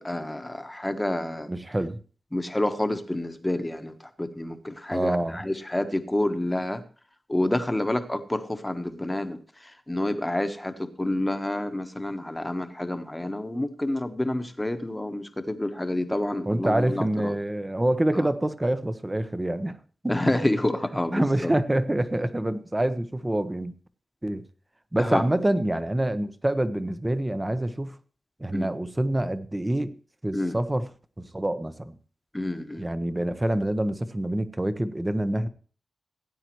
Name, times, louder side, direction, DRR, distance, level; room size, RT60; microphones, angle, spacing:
voice 1, 0.0-1.5 2.3-6.8 7.3-17.3 18.1-18.3 20.1-21.5 25.0-25.2 28.5-28.7 30.3-30.6 32.3-32.9, left 1 dB, 15° left, 8 dB, 1.2 m, -28 dB
voice 2, 1.5-2.0 4.9-5.4 16.5-19.8 20.0-20.1 21.1-23.7 24.2-24.4 24.9-28.0 28.4-29.9 30.2-30.9 31.2-31.9 32.8-35.5, right 1 dB, 20° right, 12 dB, 0.9 m, -26 dB
17.5 x 9.0 x 3.1 m, 0.40 s
cardioid pair, 60°, 0 cm